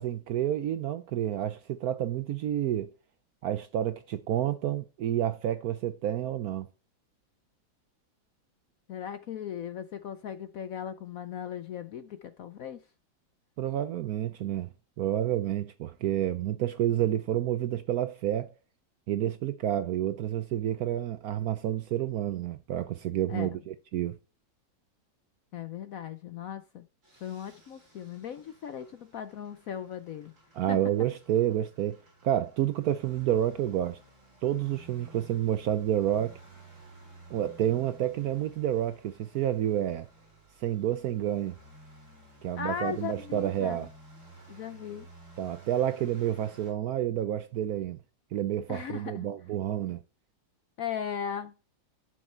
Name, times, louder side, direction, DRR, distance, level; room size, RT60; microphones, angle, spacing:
voice 1, 0.0-2.9 3.4-6.7 13.6-14.7 15.0-18.5 19.1-24.2 30.5-34.0 34.4-36.4 37.3-40.1 40.6-41.5 42.4-43.9 45.4-48.0 48.3-50.0, right 11 dB, 70° right, 0.9 m, -29 dB
voice 2, 8.9-12.8 23.3-23.6 25.5-26.8 27.2-30.3 30.7-30.8 42.6-43.9 44.5-45.1 48.7-49.3 50.8-51.5, left 8 dB, 65° left, 0.8 m, -38 dB
sound 1, 27.0-46.7, right 1 dB, 40° right, 4.3 m, -54 dB
11.5 x 6.4 x 4.4 m
omnidirectional pair, 2.0 m